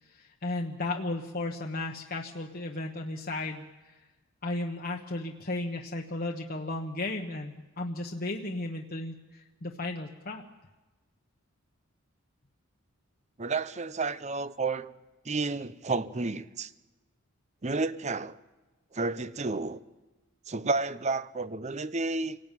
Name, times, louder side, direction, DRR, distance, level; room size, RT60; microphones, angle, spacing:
voice 1, 0.0-4.1 4.4-10.4, left 2 dB, 45° left, 1 dB, 1.3 m, -35 dB
voice 2, 13.4-14.9 15.2-16.7 17.6-18.4 18.9-19.8 20.5-22.4, right 3 dB, 35° right, 15 dB, 0.7 m, -31 dB
27.5 x 18.0 x 9.2 m, 1.2 s
head